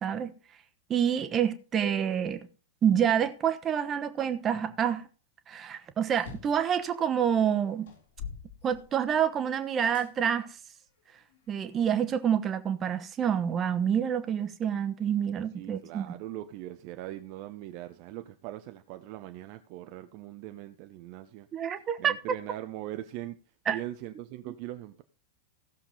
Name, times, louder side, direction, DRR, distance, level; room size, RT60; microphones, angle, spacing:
voice 1, 0.0-0.3 0.9-2.4 2.8-5.1 5.5-7.9 8.6-10.6 11.5-16.1 21.5-22.1 23.7-23.8, right 8 dB, 25° right, 1.2 m, -27 dB
sound 1, 6.1-6.7 7.3-7.4 7.9-9.3 9.9-10.1 10.8-11.9, left 6 dB, 65° left, 5.7 m, -44 dB
voice 2, 15.6-21.5 22.0-23.4 23.7-25.0, right 14 dB, 45° right, 0.8 m, -41 dB
16.0 x 7.1 x 4.0 m
figure-of-eight pair, 90°, 0 cm